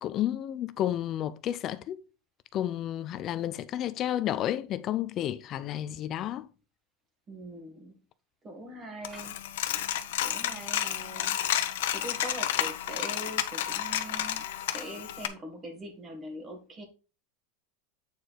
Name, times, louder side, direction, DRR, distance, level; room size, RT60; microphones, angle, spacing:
voice 1, 0.0-2.0 2.5-6.5, left 11 dB, 35° left, 0.4 m, -31 dB
voice 2, 7.3-7.9 8.4-9.4 9.7-9.9 10.2-11.4 11.7-14.4 14.7-16.8, right 1 dB, 20° right, 2.0 m, -42 dB
Coin (dropping), 9.0-15.3, left 12 dB, 80° left, 1.0 m, -31 dB
8.3 x 4.7 x 4.4 m
supercardioid pair, 155°, 0 cm